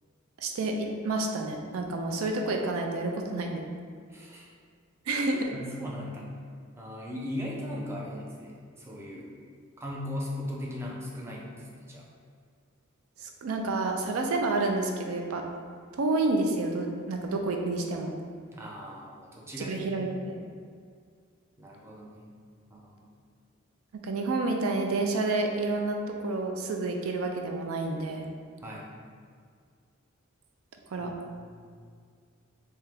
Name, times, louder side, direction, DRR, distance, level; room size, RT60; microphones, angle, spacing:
voice 1, 0.4-3.6 5.1-5.5 13.2-15.4 15.9-18.1 19.6-20.3 23.9-28.3 30.9-31.1, right 2 dB, 80° right, 3 dB, 0.4 m, -29 dB
voice 2, 4.1-4.5 5.3-6.3 6.8-9.3 9.8-12.1 18.5-19.9 21.6-22.3 22.7-23.1 28.6-28.9 31.0-31.1 31.4-31.7, left 1 dB, 10° right, -4 dB, 0.5 m, -38 dB
3.3 x 2.8 x 3.4 m, 2.1 s
head